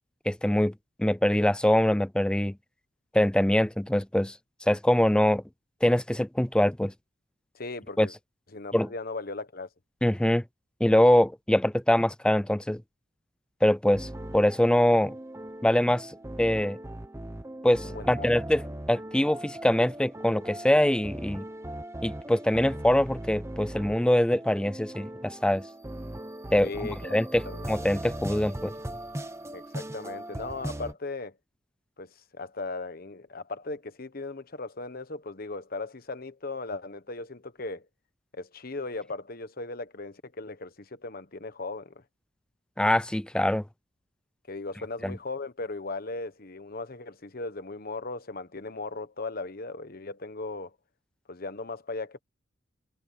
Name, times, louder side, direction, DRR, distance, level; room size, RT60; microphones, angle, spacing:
voice 1, 0.3-0.7 1.0-2.6 3.1-4.3 4.7-5.4 5.8-6.9 8.0-8.1 8.7-8.9 10.0-10.4 10.8-12.8 13.6-15.1 15.6-16.1 16.4-16.8 17.6-21.5 22.0-25.6 26.5-26.7 27.1-27.4 27.7-28.7 42.8-43.6 45.0-45.1, left 1 dB, 5° left, 0.4 m, -23 dB
voice 2, 7.5-8.1 8.5-9.7 17.8-18.3 26.6-27.1 27.4-27.7 29.5-31.3 32.0-37.9 38.3-42.0 44.5-50.7 51.3-52.2, left 3 dB, 50° left, 1.2 m, -37 dB
sound 1, 13.9-30.9, right 1 dB, 15° right, 1.1 m, -39 dB
head